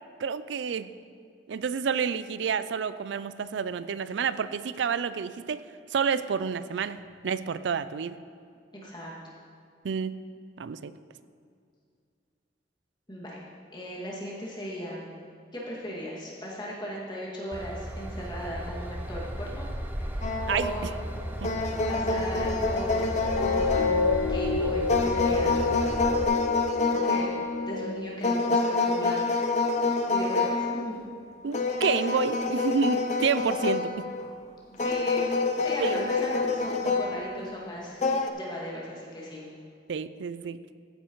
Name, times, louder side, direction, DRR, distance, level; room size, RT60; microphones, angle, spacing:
voice 1, 0.2-0.9 1.5-5.6 5.9-7.0 7.2-8.2 9.8-10.1 10.6-10.9 20.5-20.7 21.4-21.5 31.4-34.1 35.8-36.1 39.9-40.6, right 6 dB, 80° right, 14 dB, 0.4 m, -29 dB
voice 2, 8.8-9.1 13.1-13.4 13.7-15.1 15.5-19.7 20.0-20.9 21.9-23.0 23.4-25.6 26.9-27.4 27.7-29.3 30.1-30.9 34.8-35.3 35.6-38.0 38.3-39.5, equal, 25° left, -5 dB, 2.2 m, -37 dB
Train / Engine, 17.5-26.2, equal, 10° right, 0.6 m, -35 dB
sound 1, 20.2-20.9 21.4-24.4 24.9-27.8 28.2-30.9 31.5-34.3 34.8-37.4 38.0-38.3, left 3 dB, 40° left, 0.6 m, -27 dB
sound 2, 22.4-29.1 29.7-29.9, left 4 dB, 70° left, 1.6 m, -30 dB
14.5 x 9.2 x 3.1 m, 2.3 s
head